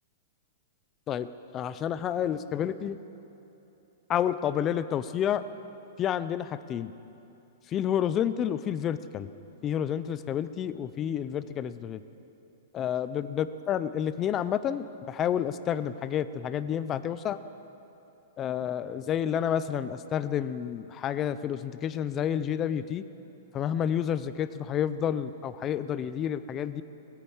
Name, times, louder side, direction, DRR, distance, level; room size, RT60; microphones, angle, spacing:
voice 1, 1.5-3.0 4.1-5.4 6.0-6.9 7.7-9.3 9.6-12.0 12.7-17.4 18.4-23.0 23.5-26.8, left 9 dB, 15° left, 13 dB, 0.4 m, -29 dB
19.0 x 9.6 x 7.2 m, 3.0 s
supercardioid pair, 175°, 0 cm